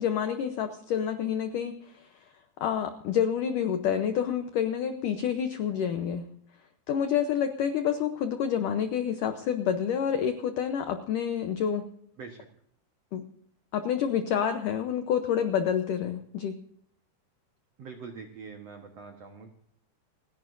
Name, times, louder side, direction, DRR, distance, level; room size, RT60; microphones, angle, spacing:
voice 1, 0.0-2.1 2.6-6.2 6.9-11.8 13.1-13.2 13.7-16.6, left 8 dB, 80° left, 8 dB, 1.9 m, -28 dB
voice 2, 17.8-19.5, right 5 dB, 80° right, 5 dB, 1.4 m, -44 dB
29.5 x 11.0 x 2.6 m, 0.69 s
omnidirectional pair, 5.0 m